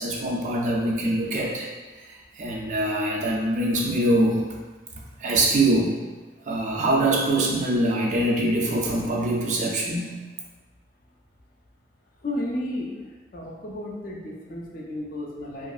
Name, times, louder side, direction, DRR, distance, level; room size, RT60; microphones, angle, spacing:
voice 1, 0.0-1.7 2.0-4.5 4.9-6.0 6.5-10.1, right 1 dB, 40° right, -2 dB, 0.3 m, -24 dB
voice 2, 12.2-13.0 13.3-15.7, left 1 dB, 50° left, -2 dB, 0.4 m, -32 dB
2.9 x 2.4 x 2.3 m, 1.3 s
head